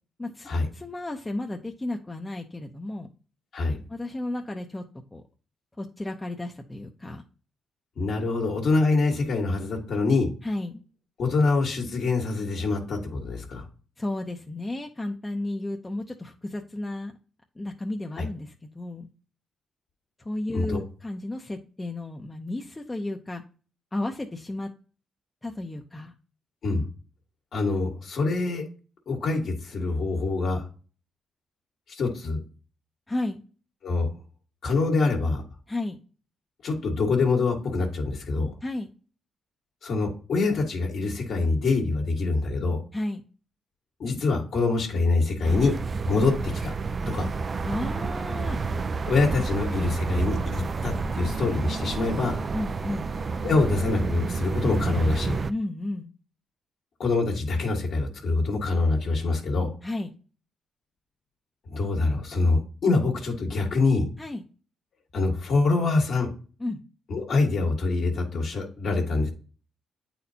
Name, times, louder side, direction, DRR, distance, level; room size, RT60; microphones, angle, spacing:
voice 1, 0.2-3.1 3.9-4.8 5.1-5.2 5.8-7.2 10.4-10.8 14.0-17.1 17.6-19.1 20.2-23.4 23.9-24.7 25.4-26.1 33.1-33.4 35.7-36.0 38.6-38.9 42.9-43.2 47.6-48.6 52.5-53.1 55.5-56.1 59.8-60.1 64.2-64.4 66.6-66.8, left 2 dB, 20° left, 3 dB, 0.7 m, -33 dB
voice 2, 8.0-10.3 11.2-13.6 18.2-18.3 20.5-20.8 26.6-26.9 27.5-28.6 29.1-30.6 31.9-32.4 33.8-34.2 34.6-35.4 36.6-38.5 39.8-42.8 44.0-45.7 46.0-46.7 47.1-47.3 49.1-52.4 53.4-55.4 57.0-59.7 61.7-64.1 65.1-66.3 67.1-69.3, left 3 dB, 70° left, 0 dB, 1.6 m, -25 dB
sound 1, 45.4-55.5, right 4 dB, 40° right, 0.4 m, -29 dB
8.6 x 4.3 x 2.7 m, 0.38 s
cardioid pair, 80°, 0 cm